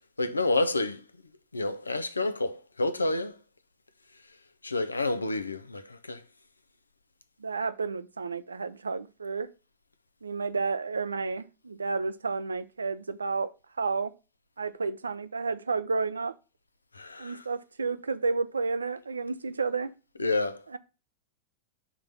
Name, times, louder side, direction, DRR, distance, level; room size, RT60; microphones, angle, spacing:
voice 1, 0.2-1.0 1.5-3.4 4.6-6.2 16.9-17.5 20.2-20.6, left 2 dB, 80° left, 0.5 m, -29 dB
voice 2, 7.4-9.5 10.2-13.5 13.8-14.1 14.6-16.3 17.2-19.9 20.7-20.8, right 4 dB, 75° right, 0.4 m, -31 dB
5.8 x 3.8 x 5.7 m
figure-of-eight pair, 90°, 0 cm